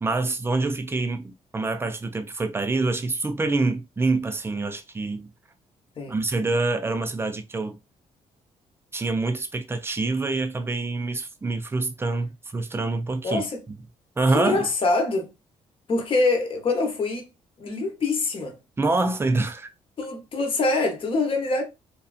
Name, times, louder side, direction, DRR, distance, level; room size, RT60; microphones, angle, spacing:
voice 1, 0.0-5.3 6.1-7.8 8.9-13.8 14.2-14.7 18.8-19.7, right 3 dB, 20° right, 0.5 m, -26 dB
voice 2, 13.2-13.6 14.3-15.3 15.9-17.3 17.6-18.6 20.0-21.6, left 3 dB, 45° left, 0.9 m, -24 dB
2.8 x 2.3 x 2.4 m
cardioid pair, 90°, 13 cm